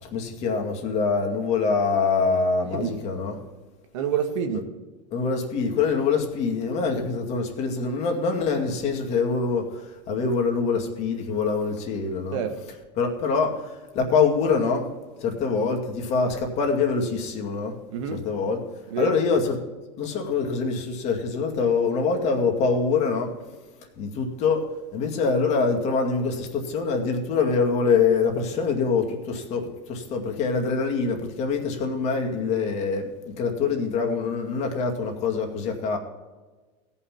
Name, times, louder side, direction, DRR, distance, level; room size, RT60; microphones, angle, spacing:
voice 1, 0.0-3.4 5.1-12.4 13.0-14.9 15.2-17.7 18.1-18.6 19.0-19.6 20.0-23.3 24.0-24.6 24.9-36.0, left 4 dB, 45° left, 2 dB, 2.2 m, -24 dB
voice 2, 3.9-4.7 12.3-12.5 17.9-18.2 18.9-19.1, right 7 dB, 85° right, 6 dB, 1.6 m, -27 dB
16.5 x 5.7 x 5.7 m, 1.3 s
supercardioid pair, 125°, 15 cm